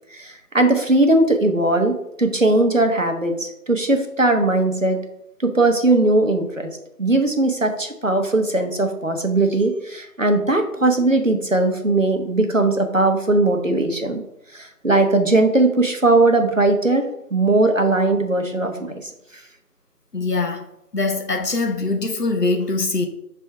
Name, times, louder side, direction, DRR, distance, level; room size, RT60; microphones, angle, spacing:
voice 1, 0.1-5.0 5.4-6.7 7.0-14.2 14.5-17.0 17.3-19.1, right 2 dB, 55° right, 0.9 m, -19 dB
voice 2, 20.1-20.6 20.9-23.1, left 3 dB, 90° left, 1.3 m, -22 dB
5.9 x 3.5 x 4.6 m
figure-of-eight pair, 180°, 46 cm